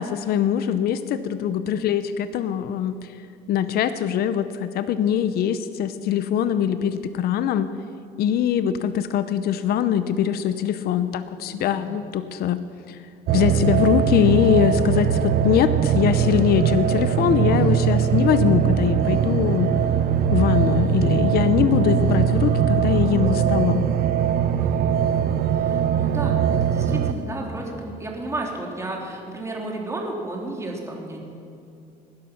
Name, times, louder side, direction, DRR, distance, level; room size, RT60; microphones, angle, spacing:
voice 1, 0.0-3.0 3.5-7.7 8.2-12.6 12.9-13.0 13.3-19.7 20.3-23.9, left 9 dB, 65° left, 12 dB, 0.7 m, -22 dB
voice 2, 11.5-11.9 24.6-25.0 25.6-31.2, right 2 dB, 15° right, 0 dB, 3.0 m, -33 dB
sound 1, 13.3-27.1, right 8 dB, 65° right, 0.8 m, -21 dB
18.5 x 11.5 x 5.9 m, 2.6 s
cardioid pair, 110°, 17 cm